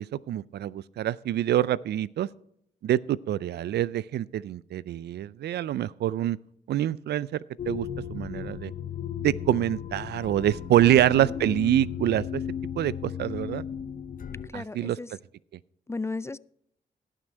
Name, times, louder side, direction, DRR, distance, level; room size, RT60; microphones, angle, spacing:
voice 1, 0.0-2.3 2.8-6.4 6.7-7.4 7.7-8.7 9.2-12.4 12.8-13.6 14.5-15.0, right 12 dB, 70° right, 21 dB, 0.4 m, -26 dB
sound 1, 7.6-14.5, left 9 dB, 50° left, 0.7 m, -35 dB
voice 2, 10.9-11.4 14.4-15.1 15.9-16.4, left 3 dB, 15° left, 20 dB, 0.3 m, -35 dB
17.5 x 6.2 x 4.5 m, 0.71 s
supercardioid pair, 55°, 17 cm